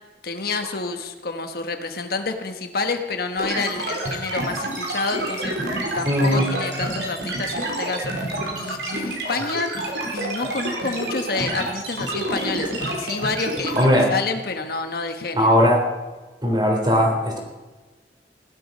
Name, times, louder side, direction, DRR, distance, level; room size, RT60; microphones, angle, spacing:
voice 1, 0.2-5.5 5.9-8.1 8.6-9.8 10.1-15.6, left 4 dB, 60° left, 6 dB, 1.3 m, -28 dB
sound 1, 3.4-13.8, right 1 dB, 80° right, 3.9 m, -28 dB
voice 2, 6.0-6.5 13.8-14.1 15.3-15.8 16.4-17.4, equal, 25° right, 1 dB, 3.4 m, -18 dB
16.5 x 12.0 x 5.5 m, 1.2 s
head